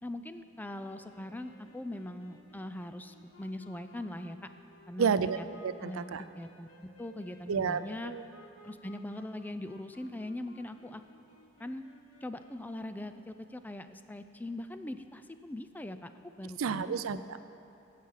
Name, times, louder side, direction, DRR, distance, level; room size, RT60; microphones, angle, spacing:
voice 1, 0.0-4.4 4.9-5.5 5.8-6.7 7.0-8.1 8.6-11.0 11.6-11.8 12.2-16.1 16.4-17.2, left 1 dB, 10° left, 9 dB, 0.4 m, -41 dB
sound 1, 0.8-13.4, equal, 70° left, 1.2 m, -58 dB
voice 2, 5.0-6.2 7.5-8.2 16.6-17.4, right 6 dB, 90° right, 13 dB, 0.4 m, -31 dB
16.5 x 7.4 x 5.6 m, 2.8 s
head